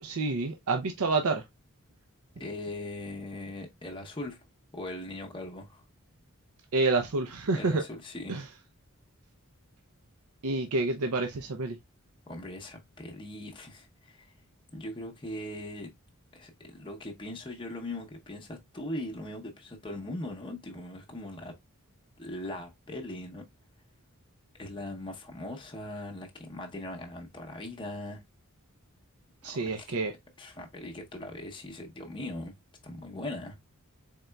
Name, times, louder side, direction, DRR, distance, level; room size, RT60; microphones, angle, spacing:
voice 1, 0.0-1.4 6.7-7.8 8.3-8.4 10.4-11.8 29.4-30.1, right 3 dB, 80° right, 0.6 m, -28 dB
voice 2, 2.4-4.4 4.7-5.8 7.6-8.5 12.3-14.3 14.7-15.9 16.3-21.5 22.2-23.4 24.5-28.2 29.4-30.0 30.4-32.6 32.8-33.5, left 1 dB, 20° left, 0.7 m, -40 dB
4.0 x 3.7 x 2.2 m
head